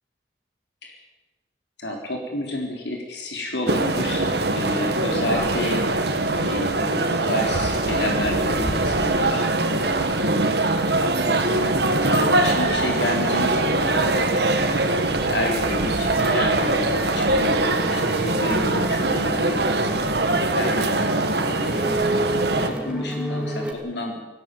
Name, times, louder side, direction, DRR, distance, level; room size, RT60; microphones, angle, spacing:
voice 1, 1.8-10.2 11.0-14.3 15.0-19.6 20.6-20.9 21.3-21.9 22.5-24.2, left 1 dB, 75° left, 1 dB, 3.8 m, -30 dB
sound 1, 3.7-22.7, right 2 dB, 65° right, 2.0 m, -22 dB
sound 2, 14.5-23.7, right 1 dB, 5° right, 2.2 m, -33 dB
18.0 x 16.5 x 9.2 m, 1.1 s
head